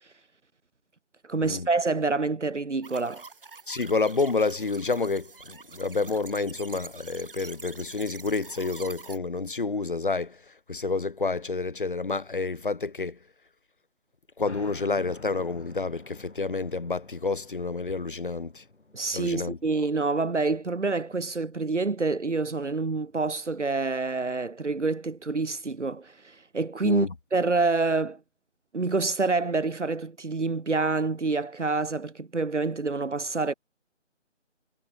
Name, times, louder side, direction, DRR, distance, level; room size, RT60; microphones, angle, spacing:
voice 1, 1.3-3.2 18.9-28.2 28.7-33.5, right 3 dB, 70° right, 1.4 m, -27 dB
sound 1, 2.8-9.2, right 4 dB, 45° right, 2.9 m, -46 dB
voice 2, 3.7-10.4 10.7-13.2 14.4-18.6 19.1-19.6 26.8-27.1, left 4 dB, 45° left, 0.5 m, -29 dB
sound 2, 14.4-25.6, left 3 dB, 65° left, 3.3 m, -52 dB
figure-of-eight pair, 155°, 37 cm